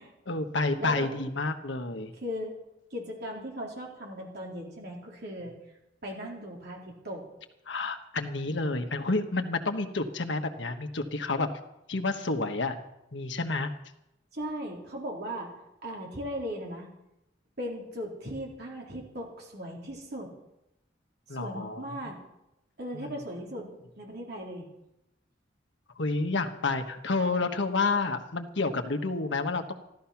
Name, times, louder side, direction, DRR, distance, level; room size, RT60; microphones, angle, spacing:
voice 1, 0.3-2.1 7.7-11.5 11.9-12.8 13.1-13.7 21.3-22.1 22.9-23.1 26.0-29.7, left 3 dB, 70° left, 6 dB, 1.3 m, -29 dB
voice 2, 2.2-2.5 2.9-5.5 6.0-7.2 14.3-15.5 15.8-16.9 17.6-20.3 21.3-22.2 22.8-23.7 24.0-24.7, equal, 60° right, -1 dB, 3.9 m, -37 dB
14.5 x 13.0 x 5.9 m, 0.88 s
head